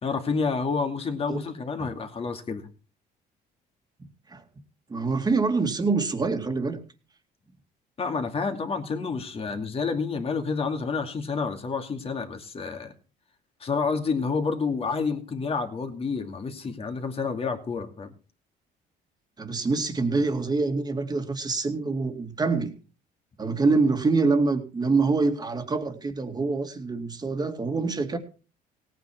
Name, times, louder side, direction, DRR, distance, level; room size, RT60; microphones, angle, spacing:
voice 1, 0.0-2.7 8.0-12.9 13.6-18.1, left 4 dB, 35° left, 5 dB, 2.6 m, -29 dB
voice 2, 4.9-6.8 19.4-22.8 23.4-28.2, right 3 dB, 25° right, 5 dB, 2.4 m, -25 dB
18.0 x 9.3 x 4.5 m, 0.36 s
cardioid pair, 110°, 17 cm